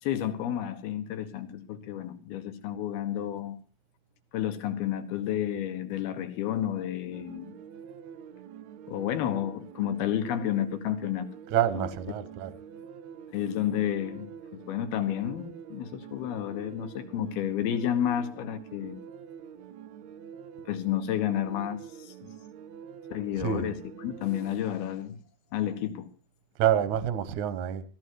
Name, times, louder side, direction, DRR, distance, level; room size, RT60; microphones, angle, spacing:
voice 1, 0.0-3.6 4.3-7.5 8.9-11.3 11.7-11.9 13.3-19.0 20.7-22.3 23.1-25.2 25.5-26.1, left 11 dB, 75° left, 3.2 m, -31 dB
sound 1, 7.1-24.6, right 8 dB, 85° right, 1.6 m, -46 dB
voice 2, 11.5-12.5 23.4-23.7 26.6-27.8, right 10 dB, 65° right, 2.0 m, -27 dB
16.0 x 15.0 x 4.7 m
omnidirectional pair, 4.6 m